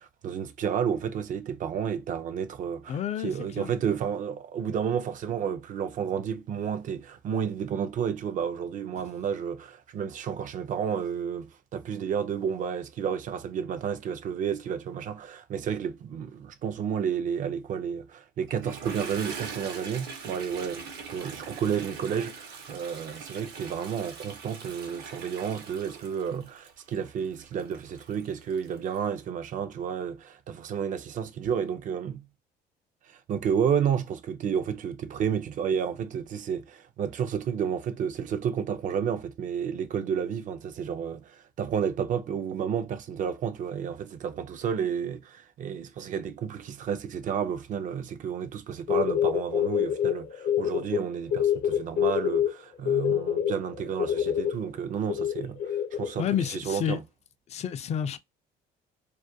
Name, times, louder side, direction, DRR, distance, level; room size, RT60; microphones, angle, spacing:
voice 1, 0.0-32.3 33.1-57.0, right 7 dB, 50° right, 0.4 m, -31 dB
voice 2, 2.9-3.7 56.2-57.0 57.5-58.2, left 9 dB, 40° left, 0.4 m, -30 dB
Toilet flush, 18.5-29.1, right 5 dB, 75° right, 0.8 m, -42 dB
sound 1, 48.9-51.0 51.3-52.5 52.9-54.5 55.1-56.1, left 9 dB, 65° left, 0.7 m, -25 dB
2.4 x 2.2 x 2.6 m
cardioid pair, 110°, 17 cm